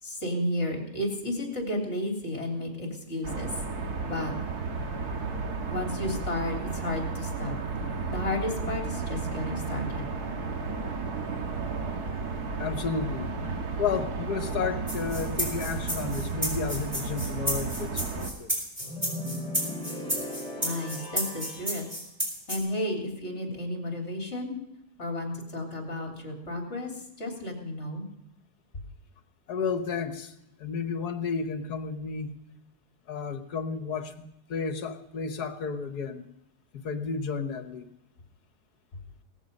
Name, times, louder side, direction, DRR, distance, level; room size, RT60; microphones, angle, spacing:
voice 1, 0.0-3.5 4.0-4.3 5.7-7.5 8.1-10.1 20.6-21.9 22.5-24.6 25.0-28.1, left 1 dB, 45° left, 2 dB, 3.7 m, -32 dB
sound 1, 3.2-18.3, right 4 dB, 70° right, 2.1 m, -33 dB
voice 2, 12.6-13.3 13.8-18.5 29.5-30.3 30.6-32.3 33.1-36.3 36.7-37.9, left 5 dB, 70° left, 9 dB, 1.7 m, -32 dB
sound 2, 14.9-22.6, equal, 15° right, 5.2 m, -31 dB
sound 3, 18.8-21.8, left 1 dB, 5° left, 4.9 m, -38 dB
17.5 x 14.5 x 5.4 m, 0.86 s
omnidirectional pair, 1.7 m